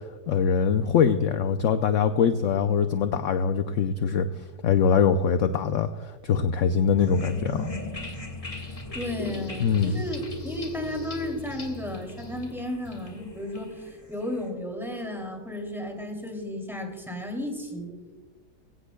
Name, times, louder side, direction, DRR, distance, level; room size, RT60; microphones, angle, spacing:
voice 1, 0.3-7.7 9.6-10.0, left 6 dB, 65° left, 8 dB, 0.8 m, -23 dB
sound 1, 7.0-14.5, left 2 dB, 20° left, 1.6 m, -38 dB
voice 2, 8.9-18.2, left 1 dB, ahead, 1 dB, 2.6 m, -34 dB
22.0 x 16.5 x 2.3 m, 1.3 s
omnidirectional pair, 1.8 m